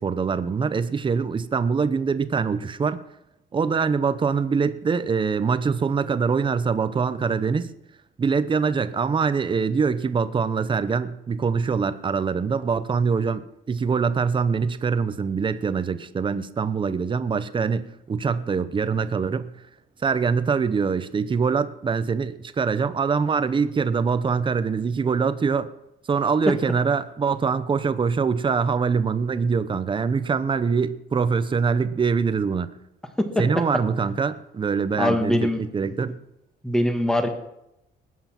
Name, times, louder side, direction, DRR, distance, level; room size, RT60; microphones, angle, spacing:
voice 1, 0.0-3.0 3.5-7.7 8.2-19.5 20.0-25.7 26.1-32.7 33.4-36.2, right 5 dB, 25° right, 12 dB, 0.8 m, -24 dB
voice 2, 35.0-35.9 36.6-37.3, left 1 dB, 5° left, 6 dB, 1.5 m, -23 dB
20.5 x 9.5 x 6.0 m, 0.85 s
cardioid pair, 170°, 20 cm